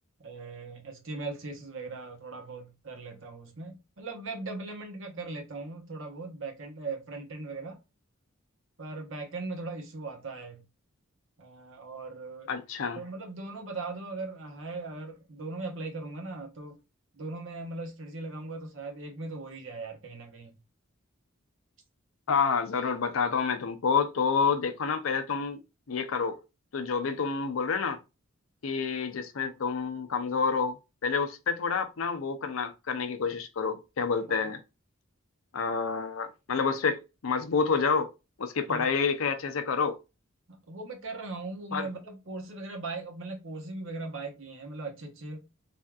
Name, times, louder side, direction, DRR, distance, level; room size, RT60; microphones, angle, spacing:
voice 1, 0.2-7.8 8.8-10.6 11.4-12.5 12.9-16.8 17.1-20.6 34.3-34.5 38.7-38.9 40.5-45.5, right 3 dB, 65° right, 0.9 m, -39 dB
voice 2, 12.5-13.0 22.3-25.6 25.9-26.4 26.7-28.0 28.6-30.8 31.0-34.6 35.5-38.1 38.4-40.0 41.7-41.9, left 5 dB, 75° left, 0.5 m, -28 dB
3.3 x 2.6 x 2.3 m
head